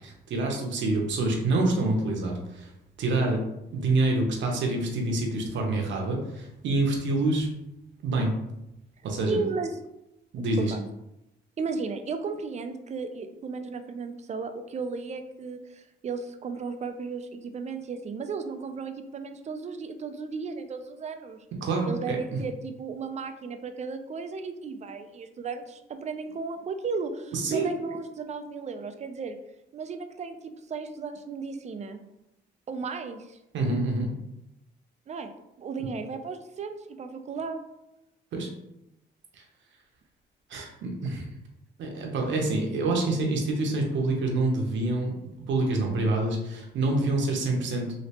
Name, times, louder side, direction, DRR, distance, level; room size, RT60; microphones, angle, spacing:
voice 1, 0.0-2.7 3.0-3.4 3.7-7.5 8.0-8.3 9.0-9.4 10.3-10.7 21.6-22.4 27.3-27.8 33.5-34.1 38.3-38.5 39.4-39.5 40.5-41.3 41.8-45.1 45.5-47.9, right 2 dB, 70° right, 0 dB, 0.8 m, -27 dB
voice 2, 9.3-9.8 10.6-10.8 11.6-21.4 21.9-29.4 29.7-32.0 32.7-33.4 35.1-35.3 35.6-37.6, right 4 dB, 35° right, 7 dB, 0.4 m, -35 dB
3.2 x 2.8 x 2.9 m, 0.88 s
cardioid pair, 90°, 20 cm